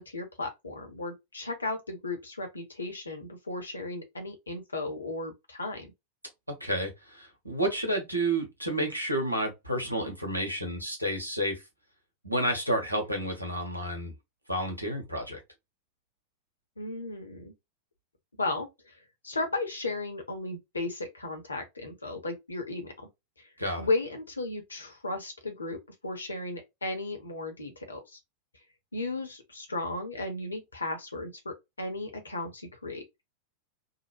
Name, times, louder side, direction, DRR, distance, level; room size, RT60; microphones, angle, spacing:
voice 1, 0.0-5.9 16.8-17.5 18.4-18.9 19.2-22.9 23.8-28.2 28.9-33.0, left 2 dB, 75° left, 0.9 m, -35 dB
voice 2, 6.6-11.6 12.2-14.1 14.5-15.4 23.6-23.9, right 1 dB, 85° right, 1.0 m, -30 dB
2.8 x 2.1 x 3.0 m
figure-of-eight pair, 90°, 0 cm